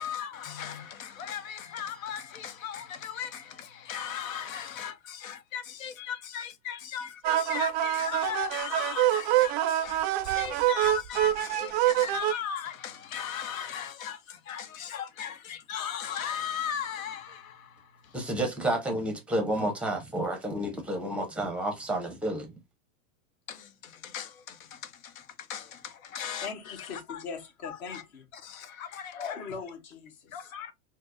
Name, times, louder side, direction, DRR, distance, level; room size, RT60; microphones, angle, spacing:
voice 1, 0.0-3.4 3.9-9.5 9.8-10.0 10.4-14.2 14.5-17.3 24.1-24.3 25.5-25.6 26.1-27.2 27.6-28.0 28.9-29.4 30.3-30.7, left 8 dB, 75° left, 0.9 m, -37 dB
sound 1, 7.2-12.3, right 12 dB, 40° right, 0.4 m, -26 dB
voice 2, 18.1-22.5, right 1 dB, 5° right, 0.7 m, -30 dB
voice 3, 26.4-28.2 29.1-30.3, left 5 dB, 50° left, 1.5 m, -40 dB
4.2 x 2.1 x 2.6 m
supercardioid pair, 135°, 41 cm